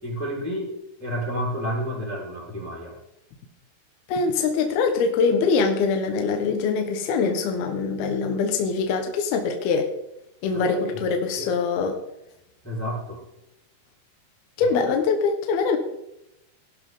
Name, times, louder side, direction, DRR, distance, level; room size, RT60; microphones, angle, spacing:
voice 1, 0.0-2.9 10.5-11.1 11.4-11.5 12.6-13.2 14.6-14.8, equal, 5° left, -5 dB, 4.4 m, -31 dB
voice 2, 4.1-9.9 10.4-12.0 14.6-15.8, left 5 dB, 70° left, 4 dB, 3.1 m, -23 dB
18.0 x 11.5 x 3.8 m, 0.83 s
omnidirectional pair, 4.7 m